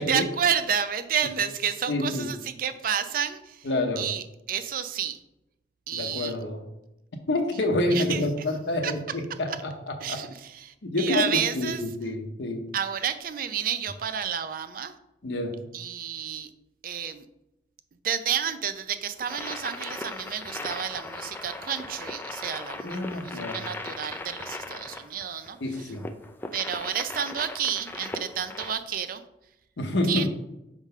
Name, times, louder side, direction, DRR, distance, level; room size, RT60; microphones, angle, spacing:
voice 1, 0.0-3.7 4.0-5.2 5.9-6.3 7.9-8.2 8.8-8.9 9.5-9.6 10.0-11.8 12.7-14.9 15.7-16.5 16.8-17.3 18.0-25.9 26.5-29.2 30.1-30.3, right 8 dB, 55° right, 11 dB, 0.4 m, -30 dB
voice 2, 1.9-2.4 3.6-4.1 5.9-6.7 7.3-10.2 10.8-12.7 15.2-15.7 22.8-23.7 25.6-26.1 29.8-30.3, left 2 dB, 85° left, 3 dB, 0.8 m, -28 dB
sound 1, 19.2-28.7, left 2 dB, 10° left, 0.3 m, -38 dB
4.7 x 3.8 x 5.4 m, 0.89 s
head